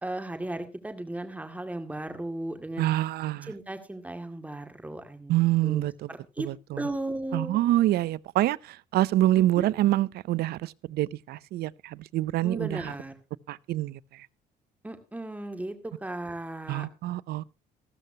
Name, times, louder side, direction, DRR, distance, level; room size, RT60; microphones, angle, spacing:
voice 1, 0.0-2.9 3.5-6.5 6.8-7.6 9.4-9.7 12.4-13.1 14.8-16.9, right 1 dB, 10° right, 2.1 m, -36 dB
voice 2, 2.8-3.5 5.3-6.1 6.4-6.9 7.3-12.9 13.5-14.0 16.7-17.5, right 15 dB, 70° right, 0.5 m, -26 dB
14.0 x 13.5 x 2.8 m
cardioid pair, 110°, 17 cm